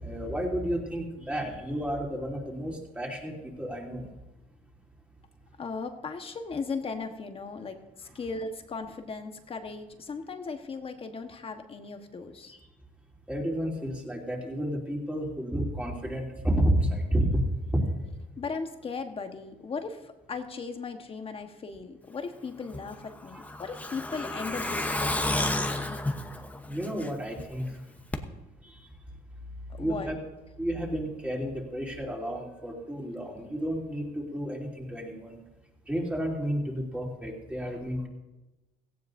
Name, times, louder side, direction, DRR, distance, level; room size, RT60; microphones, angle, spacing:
voice 1, 0.0-4.1 13.3-17.4 17.7-17.8 23.3-23.4 26.7-27.7 29.8-30.2 30.6-35.4 35.9-38.1, right 1 dB, 5° right, -1 dB, 3.2 m, -31 dB
voice 2, 5.6-12.5 18.4-26.0 29.7-30.1, left 4 dB, 35° left, 6 dB, 1.3 m, -37 dB
Truck, 22.7-27.4 27.7-27.8 28.1-28.2, left 1 dB, 10° left, 1.0 m, -31 dB
17.5 x 15.5 x 2.7 m, 1.0 s
cardioid pair, 110°, 17 cm